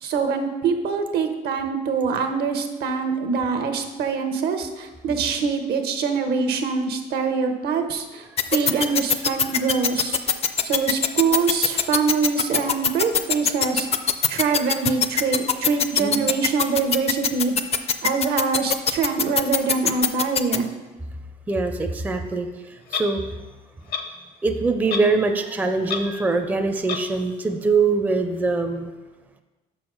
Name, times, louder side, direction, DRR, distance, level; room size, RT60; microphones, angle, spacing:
voice 1, 0.0-13.9 14.3-17.5 18.0-20.7, right 5 dB, 70° right, 6 dB, 0.9 m, -24 dB
sound 1, 8.4-20.6, left 7 dB, 40° left, 0.5 m, -20 dB
voice 2, 16.0-16.3 21.5-23.2 24.4-28.9, right 3 dB, 10° right, 6 dB, 0.5 m, -23 dB
Clock, 22.9-23.1 23.9-24.0 24.9-25.1 25.4-25.5 25.9-26.0 26.9-27.0, left 6 dB, 65° left, 0.8 m, -28 dB
6.2 x 5.9 x 4.9 m, 1.2 s
cardioid pair, 110°, 17 cm